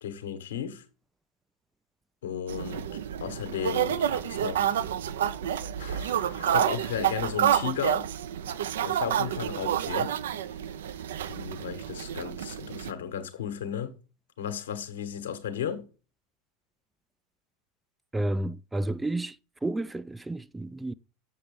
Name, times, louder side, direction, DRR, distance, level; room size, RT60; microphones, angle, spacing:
voice 1, 0.0-0.8 2.2-2.9 3.2-4.7 5.8-8.1 8.8-10.2 11.3-14.0 14.4-15.9, left 8 dB, 70° left, 1.2 m, -35 dB
sound 1, 2.5-12.9, right 10 dB, 65° right, 0.5 m, -29 dB
voice 2, 18.1-19.4 19.6-20.9, right 1 dB, 10° right, 0.3 m, -31 dB
7.2 x 6.7 x 3.5 m
figure-of-eight pair, 80°, 0 cm